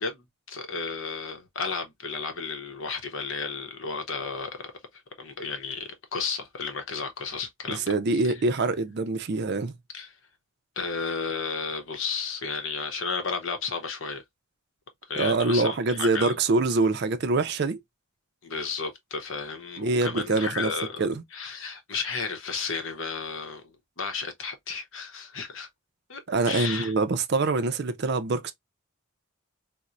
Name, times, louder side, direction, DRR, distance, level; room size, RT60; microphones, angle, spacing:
voice 1, 0.0-4.7 5.2-8.4 9.9-10.1 10.8-14.2 15.1-16.4 18.4-25.7 26.1-26.9, left 5 dB, 65° left, 0.8 m, -33 dB
voice 2, 7.7-9.7 15.2-17.8 19.8-20.7 21.0-21.2 26.3-28.5, right 3 dB, 50° right, 0.4 m, -25 dB
4.2 x 2.1 x 2.5 m
head